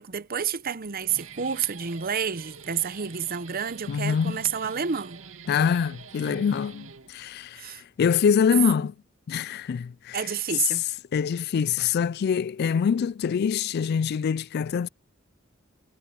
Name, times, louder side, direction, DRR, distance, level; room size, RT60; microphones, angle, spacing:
voice 1, 0.0-5.2 7.6-7.8 10.1-10.8, right 7 dB, 45° right, 0.8 m, -29 dB
Guitar, 0.8-7.5, right 5 dB, 80° right, 2.3 m, -46 dB
voice 2, 3.9-4.4 5.5-7.7 8.0-8.9 9.3-10.2 11.1-14.9, left 7 dB, 50° left, 0.3 m, -24 dB
head